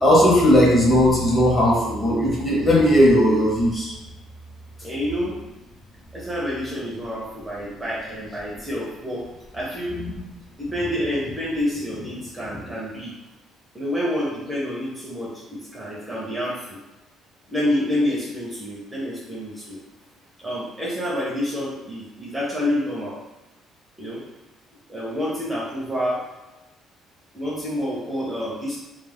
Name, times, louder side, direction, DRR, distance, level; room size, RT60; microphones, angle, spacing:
voice 1, 0.0-3.9 9.9-10.1, equal, 20° left, -5 dB, 0.8 m, -17 dB
voice 2, 4.8-5.3 6.1-9.3 9.5-10.0 10.6-13.1 13.7-16.8 17.5-19.8 20.4-23.2 24.0-24.2 24.9-26.2 27.3-28.8, left 1 dB, 5° right, -6 dB, 0.5 m, -28 dB
2.3 x 2.0 x 3.3 m, 1.0 s
cardioid pair, 145°, 0 cm